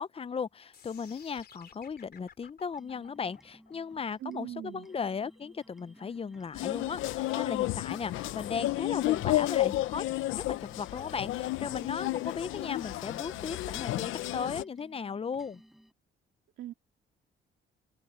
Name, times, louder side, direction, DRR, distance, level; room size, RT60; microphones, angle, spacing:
voice 1, 0.0-10.1 10.3-15.6, left 6 dB, 30° left, 0.7 m, -36 dB
sound 1, 0.7-6.8, left 7 dB, 55° left, 3.6 m, -56 dB
sound 2, 2.7-15.9, equal, ahead, 7.8 m, -57 dB
voice 2, 4.2-4.9 16.6-16.7, right 13 dB, 80° right, 2.3 m, -40 dB
sound 3, 6.5-14.6, left 16 dB, 90° left, 0.7 m, -32 dB
cardioid pair, 90°, 20 cm